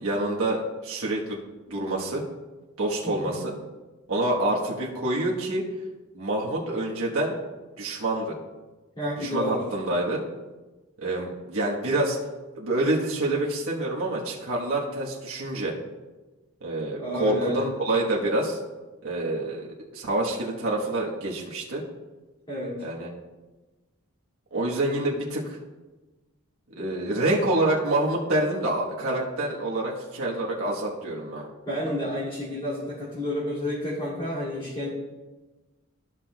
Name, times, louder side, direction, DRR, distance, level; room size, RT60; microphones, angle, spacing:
voice 1, 0.0-1.4 1.7-2.2 2.8-3.5 4.1-5.7 6.1-7.3 7.8-8.3 9.2-10.2 11.0-12.2 12.6-15.8 16.6-18.6 19.0-19.7 19.9-21.8 22.8-23.1 24.5-25.4 26.8-31.5, right 1 dB, 85° right, -3 dB, 1.3 m, -27 dB
voice 2, 9.0-9.6 17.0-17.7 22.5-22.8 31.7-34.9, left 1 dB, 20° left, -9 dB, 2.4 m, -30 dB
14.0 x 6.0 x 2.3 m, 1.2 s
head